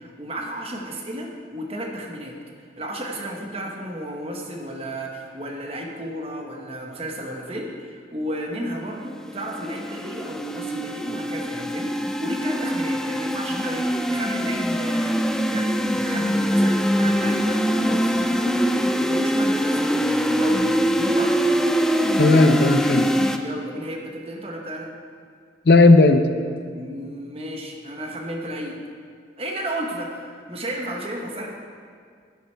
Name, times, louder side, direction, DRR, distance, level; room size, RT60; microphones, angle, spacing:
voice 1, 0.0-2.4 2.8-20.8 21.1-21.4 23.4-24.9 26.7-28.8 29.4-31.5, right 1 dB, 35° right, 1 dB, 1.3 m, -33 dB
sound 1, 9.1-23.4, equal, 5° left, 0.4 m, -23 dB
voice 2, 22.2-23.1 25.7-26.2, left 2 dB, 60° left, 7 dB, 0.6 m, -14 dB
11.0 x 9.5 x 4.5 m, 2.1 s
head